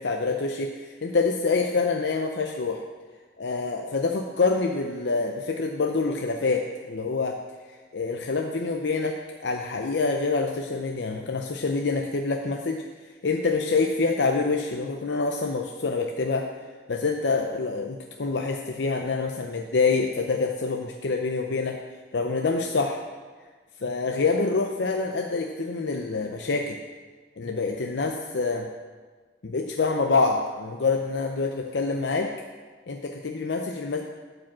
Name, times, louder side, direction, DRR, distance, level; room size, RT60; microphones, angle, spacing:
voice 1, 0.0-2.8 3.4-7.4 7.9-9.2 9.4-12.8 13.2-16.5 16.9-21.8 22.1-23.0 23.8-26.8 27.4-28.7 29.4-32.3 32.9-34.0, left 4 dB, 70° left, 3 dB, 0.6 m, -26 dB
12.0 x 5.1 x 7.3 m, 1.4 s
head